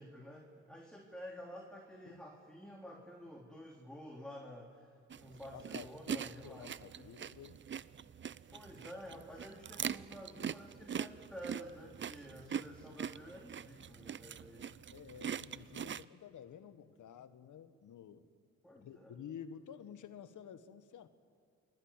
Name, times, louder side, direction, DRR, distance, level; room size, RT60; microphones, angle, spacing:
voice 1, 0.0-7.1 8.0-8.2 8.5-14.7 18.6-19.2, equal, ahead, 0 dB, 3.7 m, -51 dB
sound 1, 5.1-16.1, right 8 dB, 35° right, 0.6 m, -43 dB
voice 2, 5.3-7.6 14.9-18.3 18.8-21.1, left 8 dB, 60° left, 11 dB, 1.7 m, -51 dB
29.0 x 21.0 x 9.1 m, 2.2 s
supercardioid pair, 60°, 34 cm